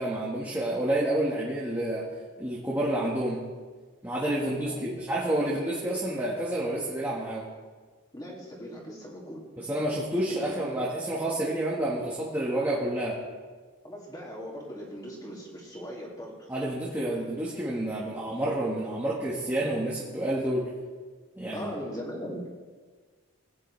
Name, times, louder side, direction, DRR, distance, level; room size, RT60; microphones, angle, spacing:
voice 1, 0.0-2.1 2.4-3.4 4.0-7.4 9.6-13.2 16.5-20.6 21.4-21.7, right 1 dB, 10° right, -6 dB, 1.4 m, -29 dB
voice 2, 4.4-5.0 8.1-9.4 10.2-10.4 13.8-16.5 21.5-22.5, equal, 15° left, -3 dB, 2.3 m, -39 dB
19.5 x 9.8 x 3.2 m, 1.5 s
head